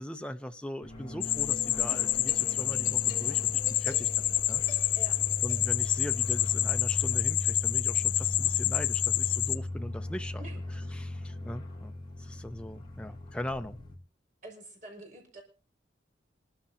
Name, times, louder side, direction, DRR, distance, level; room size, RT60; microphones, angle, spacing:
voice 1, 0.0-4.8 5.4-10.4 10.9-11.9 12.2-13.8, left 1 dB, 5° left, 0.6 m, -40 dB
sound 1, 0.8-14.0, left 1 dB, 25° left, 2.4 m, -38 dB
sound 2, 1.2-9.6, left 14 dB, 70° left, 0.7 m, -28 dB
sound 3, 1.3-8.7, left 4 dB, 50° left, 2.1 m, -50 dB
voice 2, 10.4-11.0 14.4-15.4, right 2 dB, 45° right, 5.3 m, -48 dB
27.0 x 13.0 x 2.7 m
head